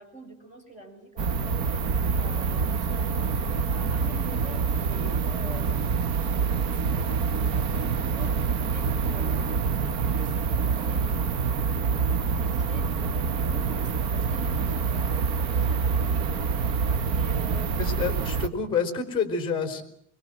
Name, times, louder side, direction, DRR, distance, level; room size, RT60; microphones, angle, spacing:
voice 1, 0.0-11.1 12.5-18.5, right 2 dB, 20° right, 4 dB, 6.0 m, -46 dB
sound 1, 1.2-18.5, right 5 dB, 50° right, 1.6 m, -26 dB
voice 2, 17.8-19.8, left 5 dB, 15° left, 6 dB, 3.9 m, -28 dB
25.0 x 22.5 x 7.7 m, 0.71 s
cardioid pair, 175°, 36 cm